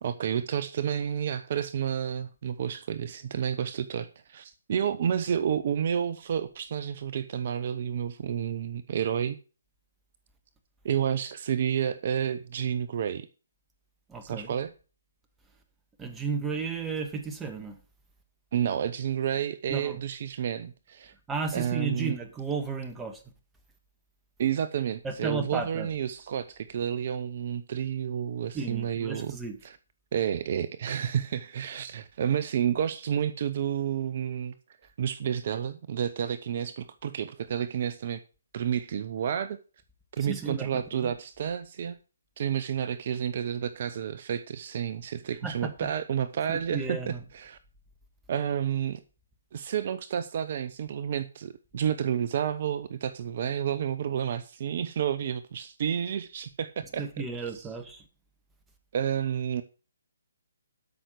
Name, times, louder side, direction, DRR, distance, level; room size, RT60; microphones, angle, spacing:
voice 1, 0.0-9.4 10.8-13.3 14.2-14.7 18.5-21.1 21.5-22.2 24.4-29.4 29.6-29.8 30.1-34.5 35.0-38.2 38.5-39.6 40.1-41.9 42.4-47.6 48.3-49.0 49.5-57.0 58.9-59.6, right 8 dB, 45° right, 0.7 m, -30 dB
voice 2, 14.1-14.5 16.0-17.8 19.7-20.0 21.3-23.2 25.0-25.9 28.5-29.6 40.2-41.1 45.4-45.7 46.5-47.2 57.0-58.0, right 4 dB, 10° right, 1.6 m, -34 dB
13.0 x 5.9 x 6.5 m
figure-of-eight pair, 140°, 0 cm